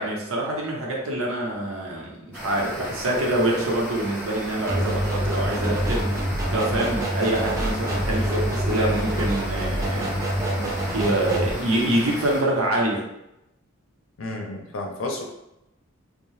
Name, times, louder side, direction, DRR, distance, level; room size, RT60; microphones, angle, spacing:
voice 1, 0.0-10.1 10.4-10.5 10.9-13.0, right 1 dB, 80° right, -2 dB, 0.7 m, -25 dB
sound 1, 2.3-12.4, equal, 5° left, 1.3 m, -35 dB
sound 2, 4.7-11.5, right 1 dB, 15° right, 0.4 m, -26 dB
voice 2, 14.2-15.2, left 2 dB, 75° left, 1 dB, 0.6 m, -31 dB
2.7 x 2.1 x 3.1 m, 0.88 s
head